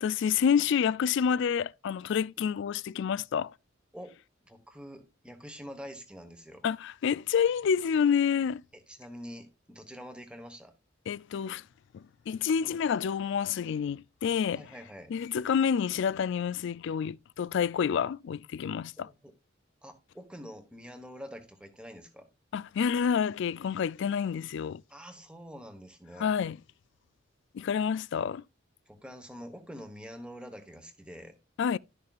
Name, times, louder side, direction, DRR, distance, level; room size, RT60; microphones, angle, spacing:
voice 1, 0.0-3.5 6.6-8.6 11.1-11.6 11.9-14.7 15.1-19.1 22.5-24.8 26.2-26.6 27.5-28.4 31.6-31.8, left 7 dB, 65° left, 0.3 m, -28 dB
voice 2, 4.4-6.6 8.9-10.7 14.5-15.1 19.0-19.3 19.8-22.3 24.9-26.3 28.9-31.3, equal, 5° right, 1.3 m, -46 dB
12.0 x 6.6 x 2.4 m
head